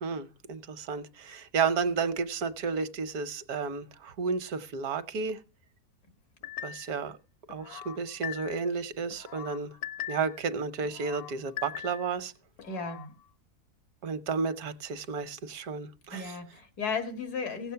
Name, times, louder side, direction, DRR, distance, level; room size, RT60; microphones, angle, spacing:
voice 1, 0.0-5.4 6.6-7.2 7.5-9.7 10.1-12.3 14.0-16.4, right 5 dB, 75° right, 12 dB, 1.4 m, -32 dB
sound 1, 6.4-7.0 7.5-8.7 9.1-10.4 10.8-12.2 12.6-13.1, left 10 dB, 65° left, 1.1 m, -41 dB
voice 2, 12.6-13.1 16.1-17.7, left 5 dB, 85° left, 7 dB, 2.4 m, -35 dB
16.5 x 8.1 x 5.7 m, 0.33 s
omnidirectional pair, 1.6 m